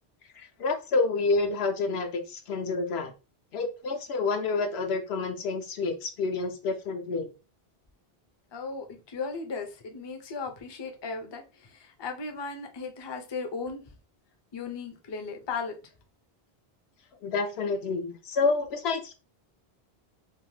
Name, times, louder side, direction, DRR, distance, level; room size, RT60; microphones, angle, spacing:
voice 1, 0.4-3.1 3.5-7.3 17.2-19.1, left 3 dB, 80° left, 0.9 m, -28 dB
voice 2, 8.5-13.8 14.5-15.7, left 4 dB, 40° left, 0.4 m, -36 dB
2.6 x 2.1 x 3.1 m
omnidirectional pair, 1.0 m